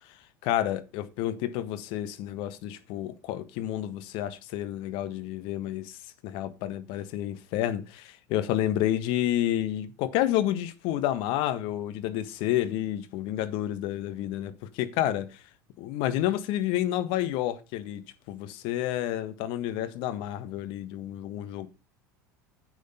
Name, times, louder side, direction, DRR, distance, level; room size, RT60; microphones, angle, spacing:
voice 1, 0.4-6.0 6.2-15.4 15.8-21.7, left 12 dB, 55° left, 1.5 m, -30 dB
10.5 x 8.1 x 5.6 m
figure-of-eight pair, 75°, 10 cm